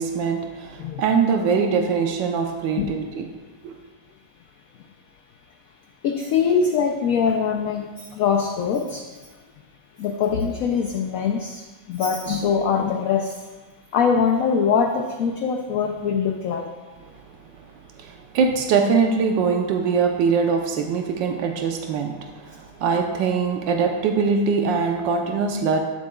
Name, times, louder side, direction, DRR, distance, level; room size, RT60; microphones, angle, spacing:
voice 1, 0.0-3.3 3.6-3.7 18.0-25.8, right 5 dB, 85° right, 3 dB, 1.4 m, -22 dB
voice 2, 6.0-9.0 10.0-11.6 11.9-13.3 13.9-16.7, left 6 dB, 75° left, 4 dB, 0.8 m, -22 dB
13.0 x 7.5 x 2.3 m, 1.3 s
omnidirectional pair, 2.0 m